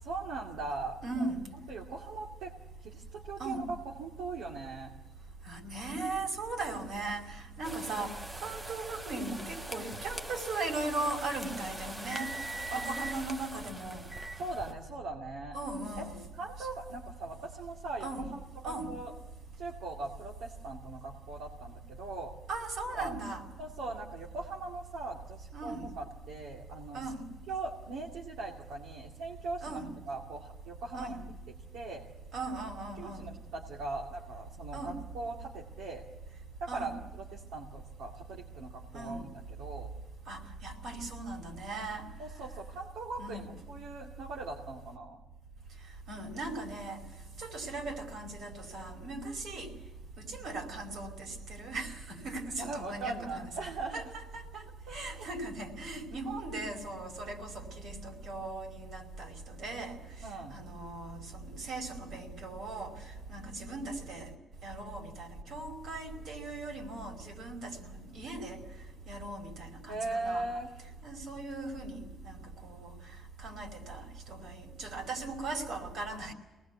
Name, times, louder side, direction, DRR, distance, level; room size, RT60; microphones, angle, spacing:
voice 1, 0.0-1.3 1.7-2.5 2.8-4.9 12.7-12.8 14.4-15.6 16.0-16.1 16.4-19.1 19.6-22.3 22.9-23.2 23.6-27.0 27.5-31.2 31.7-32.0 33.0-36.0 36.6-39.9 42.2-45.2 52.6-54.0 54.9-55.2 60.2-60.6 69.9-70.7, right 3 dB, 85° right, -1 dB, 2.3 m, -40 dB
voice 2, 1.0-1.4 3.4-3.6 5.4-14.0 15.5-16.2 16.6-16.7 18.0-18.2 18.6-18.9 22.5-23.5 25.5-25.9 26.9-27.2 29.6-29.9 30.9-31.2 32.3-33.3 34.7-35.0 36.7-37.0 38.9-39.2 40.3-42.0 43.2-43.5 46.1-47.0 47.4-49.7 50.2-53.5 53.9-54.6 54.9-60.0 60.5-64.3 64.6-68.6 69.0-70.4 71.0-72.9 73.4-76.3, right 2 dB, 70° right, 3 dB, 5.1 m, -38 dB
sound 1, 7.6-14.7, right 2 dB, 20° right, 1.1 m, -42 dB
24.5 x 19.5 x 8.4 m, 1.2 s
cardioid pair, 90°, 0 cm